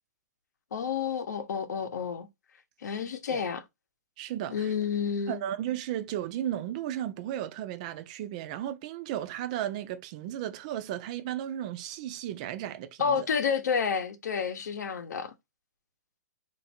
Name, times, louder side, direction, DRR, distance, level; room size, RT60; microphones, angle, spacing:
voice 1, 0.7-2.3 2.8-3.6 4.5-5.4 13.0-15.3, left 6 dB, 75° left, 0.8 m, -30 dB
voice 2, 4.2-4.7 5.3-13.3, right 11 dB, 25° right, 0.3 m, -34 dB
3.2 x 2.5 x 4.2 m
hypercardioid pair, 165°, 9 cm